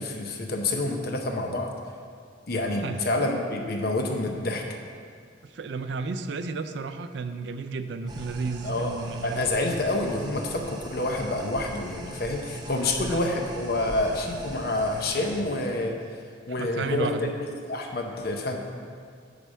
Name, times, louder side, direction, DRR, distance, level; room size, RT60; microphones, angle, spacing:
voice 1, 0.0-1.7 2.5-4.7 8.6-8.9 9.2-16.0 16.5-17.3 17.6-18.6, left 2 dB, 50° left, 2 dB, 0.7 m, -28 dB
voice 2, 5.4-9.4 12.7-13.2 16.6-17.3, right 4 dB, 65° right, 9 dB, 0.4 m, -33 dB
sound 1, 8.1-15.4, right 1 dB, 20° right, 0.6 m, -41 dB
8.8 x 3.4 x 6.3 m, 2.1 s
head